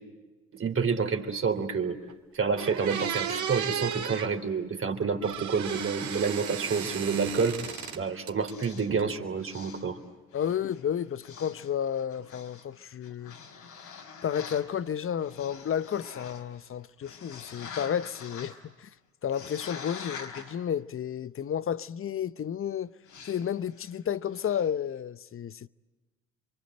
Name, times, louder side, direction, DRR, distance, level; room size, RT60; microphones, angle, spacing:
voice 1, 0.5-2.0 2.3-10.0, right 5 dB, 40° right, 3.4 m, -29 dB
sound 1, 2.1-2.2 2.6-4.3 5.2-8.0 8.3-9.0, right 8 dB, 60° right, 2.8 m, -34 dB
sound 2, 6.7-9.0 9.4-10.0 10.3-14.7 15.2-16.7 17.0-18.6 19.2-20.5 23.1-23.5 23.7-24.0 24.3-24.7, left 6 dB, 70° left, 4.8 m, -46 dB
voice 2, 10.3-13.4 14.2-18.9 19.2-22.9 23.2-25.7, left 9 dB, 40° left, 0.9 m, -32 dB
28.0 x 24.0 x 7.9 m
hypercardioid pair, 60°, 32 cm